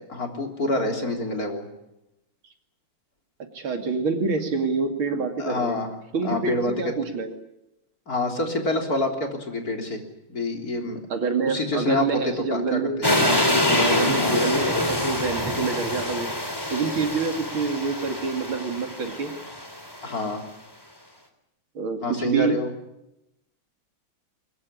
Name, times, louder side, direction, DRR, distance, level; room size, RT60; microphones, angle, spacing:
voice 1, 0.1-1.7 5.4-5.9 6.2-6.9 8.1-10.0 10.3-11.0 11.5-13.1 14.2-14.4 20.0-20.4 22.0-22.7, left 2 dB, 45° left, 3 dB, 3.9 m, -27 dB
voice 2, 3.5-5.8 6.1-7.3 11.1-13.0 13.7-16.3 16.7-19.4 21.8-22.6, right 4 dB, 80° right, 5 dB, 3.4 m, -27 dB
Electric train, 13.0-20.1, left 1 dB, 10° left, 3.2 m, -25 dB
23.0 x 20.0 x 9.9 m, 0.87 s
omnidirectional pair, 2.2 m